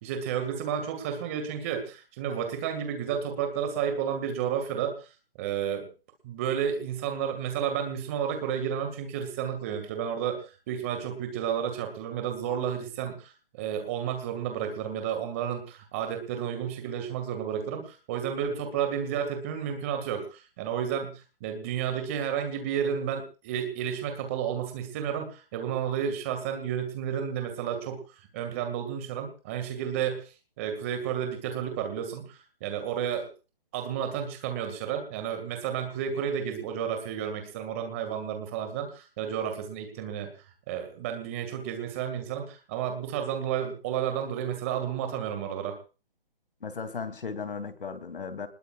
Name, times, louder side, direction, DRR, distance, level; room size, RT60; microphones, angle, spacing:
voice 1, 0.0-5.0 5.4-5.9 6.2-28.0 28.3-30.2 30.6-33.3 33.7-40.3 40.7-45.8, right 8 dB, 15° right, 6 dB, 2.2 m, -31 dB
voice 2, 46.6-48.5, left 5 dB, 65° left, 10 dB, 3.1 m, -36 dB
26.0 x 20.5 x 2.5 m, 0.34 s
hypercardioid pair, 180°, 29 cm